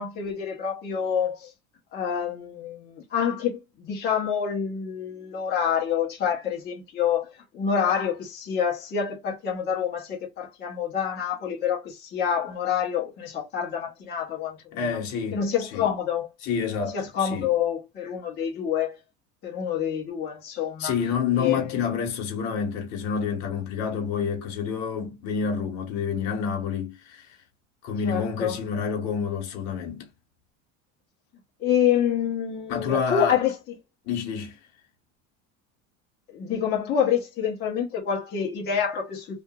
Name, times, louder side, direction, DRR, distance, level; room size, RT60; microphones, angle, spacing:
voice 1, 0.0-1.5 1.9-14.8 15.3-16.3 16.9-19.0 19.4-20.9 21.4-21.7 28.0-28.6 31.6-33.5 36.3-39.4, left 8 dB, 30° left, 0.9 m, -27 dB
voice 2, 14.7-15.9 16.4-17.5 20.8-27.3 27.8-30.1 32.7-33.4 34.0-34.6, left 6 dB, 55° left, 1.2 m, -28 dB
2.8 x 2.5 x 2.3 m
cardioid pair, 150°, 32 cm